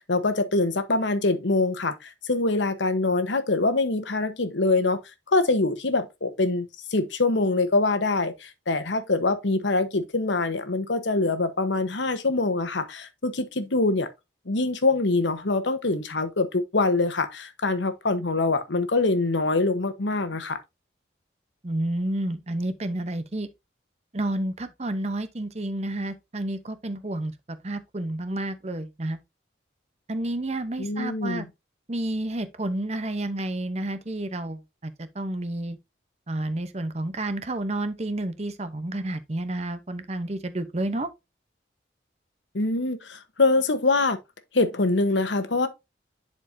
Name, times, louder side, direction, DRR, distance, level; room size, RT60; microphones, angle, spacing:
voice 1, 0.0-5.0 5.3-14.1 14.5-20.6 30.8-31.4 42.5-44.2 44.5-45.7, left 3 dB, 75° left, 1.1 m, -24 dB
voice 2, 21.6-23.5 24.1-27.3 27.6-29.2 30.1-31.5 31.9-35.8 36.3-41.1, right 1 dB, 35° right, 0.8 m, -30 dB
10.5 x 4.4 x 2.6 m
head